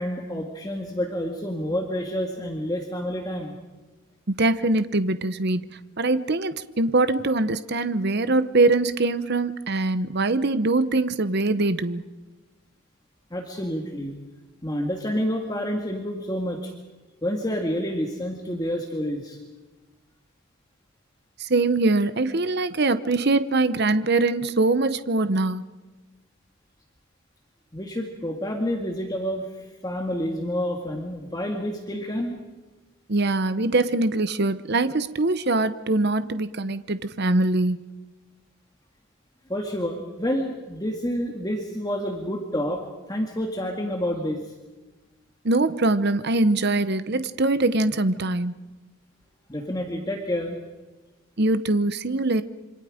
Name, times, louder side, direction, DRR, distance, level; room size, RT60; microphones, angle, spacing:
voice 1, 0.0-3.6 13.3-14.2 14.6-16.7 17.2-19.4 27.7-32.4 39.5-44.5 49.5-50.6, equal, 15° left, 1 dB, 2.1 m, -29 dB
voice 2, 4.3-5.6 6.0-12.0 21.4-25.6 33.1-37.8 45.4-48.5 51.4-52.4, right 2 dB, 50° right, 12 dB, 0.9 m, -23 dB
27.0 x 25.5 x 5.1 m, 1.2 s
head